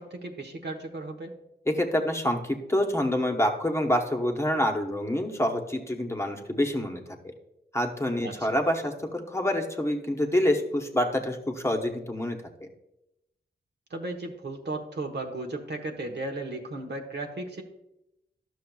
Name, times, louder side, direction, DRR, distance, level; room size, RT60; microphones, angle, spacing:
voice 1, 0.0-1.4 8.2-8.5 13.9-17.6, right 2 dB, 65° right, 2 dB, 1.1 m, -35 dB
voice 2, 1.7-7.3 7.7-12.7, left 1 dB, 15° left, 2 dB, 1.0 m, -27 dB
11.5 x 6.3 x 2.3 m, 0.87 s
cardioid pair, 65°, 19 cm